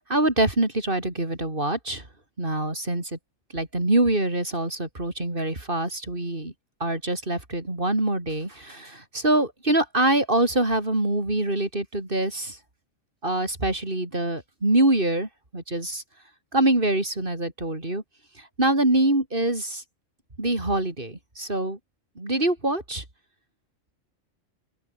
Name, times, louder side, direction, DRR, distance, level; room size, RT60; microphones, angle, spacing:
voice 1, 0.1-2.0 2.4-3.2 3.5-6.5 6.8-12.6 13.2-16.0 16.5-18.0 18.6-19.8 20.4-21.8 22.2-23.0, right 1 dB, 40° right, 4.9 m, -24 dB
open air
omnidirectional pair, 1.4 m